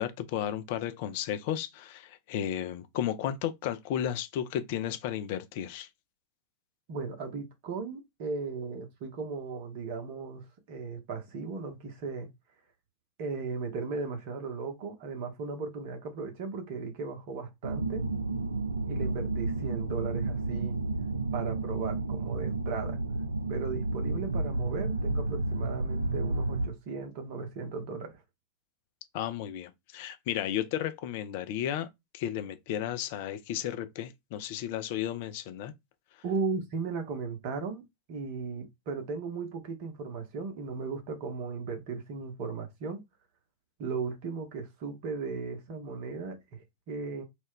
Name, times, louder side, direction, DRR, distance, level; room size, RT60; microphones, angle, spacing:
voice 1, 0.0-5.9 29.1-31.9 32.1-35.7, left 10 dB, 50° left, 0.3 m, -33 dB
voice 2, 6.9-12.3 13.2-18.0 18.9-20.8 21.3-23.0 23.5-28.2 36.2-43.0 43.8-47.2, right 4 dB, 45° right, 0.8 m, -36 dB
sound 1, 17.6-26.7, right 2 dB, 80° right, 0.3 m, -31 dB
2.3 x 2.1 x 3.5 m
figure-of-eight pair, 90°, 0 cm